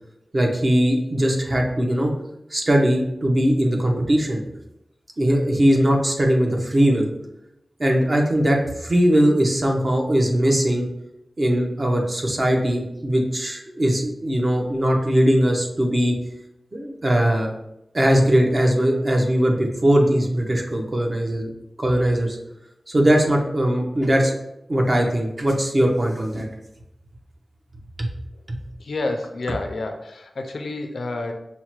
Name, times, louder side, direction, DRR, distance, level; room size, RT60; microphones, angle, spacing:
voice 1, 0.3-2.1 2.5-4.4 5.2-7.1 7.8-10.8 11.4-16.1 16.7-17.5 17.9-21.5 21.8-22.4 22.9-24.3 24.7-26.5 28.0-28.1 28.5-28.6, equal, 40° right, 1 dB, 0.7 m, -20 dB
voice 2, 28.8-31.3, left 2 dB, 75° left, 4 dB, 0.4 m, -29 dB
5.5 x 2.1 x 3.0 m, 0.85 s
wide cardioid pair, 110°, 0 cm